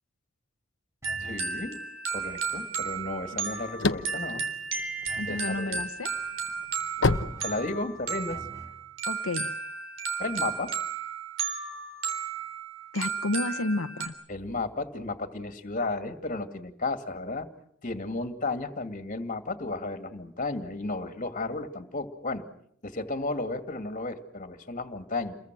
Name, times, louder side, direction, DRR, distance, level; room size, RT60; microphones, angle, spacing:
sound 1, 1.0-1.5 5.1-5.6 7.1-7.8 8.3-8.8, equal, 15° right, 3.5 m, -46 dB
sound 2, 1.0-14.1, right 5 dB, 65° right, 3.8 m, -34 dB
voice 1, 1.2-1.8 2.1-4.5 5.3-5.8 7.4-8.4 10.2-10.7 14.3-17.5 17.8-22.4 22.8-25.4, left 3 dB, 40° left, 7 dB, 2.4 m, -33 dB
sound 3, 3.3-5.5 6.0-8.2, left 3 dB, 60° left, 1.0 m, -28 dB
voice 2, 5.2-6.1 9.1-9.5 12.9-14.1, left 2 dB, 85° left, 5 dB, 1.1 m, -31 dB
29.5 x 22.5 x 6.2 m, 0.69 s
head